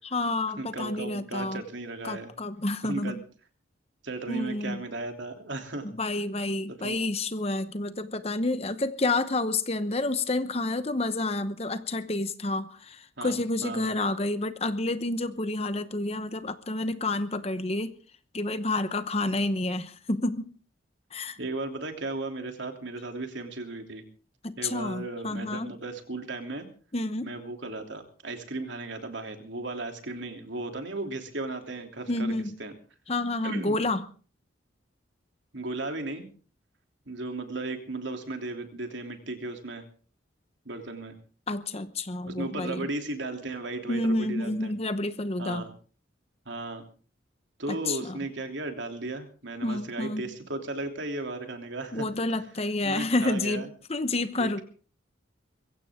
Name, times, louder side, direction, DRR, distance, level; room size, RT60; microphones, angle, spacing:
voice 1, 0.0-1.6 2.0-3.2 4.3-4.8 5.8-17.9 18.3-20.5 21.1-21.4 24.4-25.7 26.9-27.3 32.1-32.6 33.1-34.1 41.5-42.9 43.9-45.6 47.7-48.2 49.6-50.2 51.9-54.6, left 2 dB, 30° left, 11 dB, 0.9 m, -29 dB
voice 2, 0.6-2.3 2.8-3.2 4.0-5.9 6.7-7.0 13.2-13.9 21.4-24.0 24.6-26.7 27.2-32.3 32.6-32.7 33.4-33.8 35.5-36.3 37.1-39.8 40.6-41.2 42.2-44.7 45.4-45.7 46.4-46.9 47.6-52.1 52.8-53.7 54.3-54.6, right 2 dB, 70° right, 5 dB, 3.1 m, -35 dB
23.0 x 16.0 x 3.7 m, 0.40 s
head